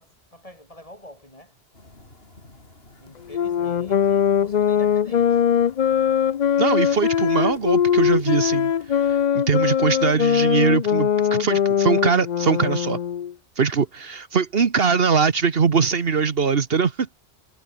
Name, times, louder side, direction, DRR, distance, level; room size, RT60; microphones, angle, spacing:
voice 1, 0.0-1.5 3.0-5.4, left 1 dB, 35° left, 8.0 m, -46 dB
sound 1, 1.7-9.3, left 2 dB, 65° left, 4.9 m, -50 dB
sound 2, 3.3-13.3, left 9 dB, 50° left, 0.6 m, -21 dB
voice 2, 6.6-13.0 13.6-17.1, right 5 dB, 65° right, 1.4 m, -22 dB
omnidirectional pair, 1.1 m